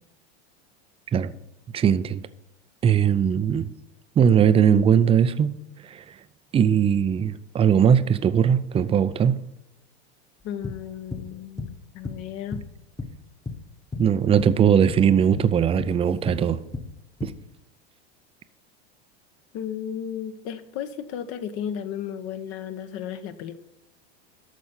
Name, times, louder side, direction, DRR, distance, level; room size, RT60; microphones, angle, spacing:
voice 1, 1.7-2.2 2.8-3.7 4.2-6.2 6.5-9.4 14.0-16.6 17.2-17.3, right 8 dB, 20° right, 0.5 m, -20 dB
voice 2, 10.4-12.6 19.5-23.6, left 9 dB, 50° left, 1.1 m, -34 dB
sound 1, 10.4-13.6 13.9-14.1 14.4-17.4, left 3 dB, 10° left, 1.1 m, -34 dB
12.5 x 4.3 x 8.1 m
supercardioid pair, 120°, 33 cm